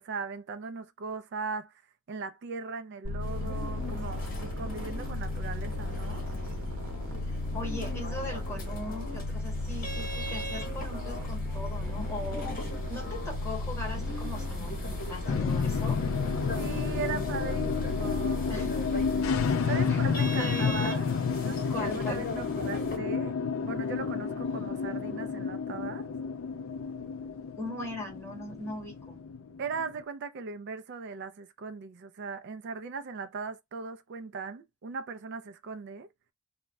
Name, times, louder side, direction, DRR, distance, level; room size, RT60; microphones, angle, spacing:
voice 1, 0.0-1.8 2.1-6.2 16.6-18.4 19.6-21.1 21.4-23.4 23.6-26.1 29.6-36.1, right 4 dB, 55° right, 0.3 m, -38 dB
sound 1, 3.0-19.5, left 2 dB, 75° right, 0.9 m, -35 dB
sound 2, 3.2-23.0, left 1 dB, 40° left, 0.8 m, -41 dB
voice 2, 7.5-12.5 12.9-16.0 18.5-18.7 19.9-20.0 20.4-21.0 21.7-22.3 27.6-29.2, left 1 dB, 10° left, 1.0 m, -39 dB
sound 3, 15.3-29.9, left 5 dB, 65° left, 0.4 m, -31 dB
2.2 x 2.1 x 3.4 m
head